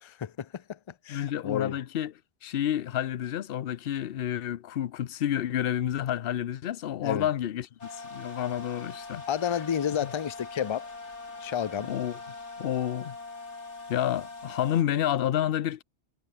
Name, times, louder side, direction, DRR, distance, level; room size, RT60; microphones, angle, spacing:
voice 1, 0.0-0.8 1.0-1.8 7.0-7.3 9.3-10.9 11.4-11.9, left 8 dB, 40° left, 0.5 m, -31 dB
voice 2, 1.1-2.1 2.4-7.7 7.9-9.2 10.0-10.1 11.9-12.2 12.6-13.2 13.9-15.8, left 11 dB, 60° left, 0.8 m, -29 dB
sound 1, 7.8-14.8, left 3 dB, 85° left, 3.2 m, -42 dB
omnidirectional pair, 1.1 m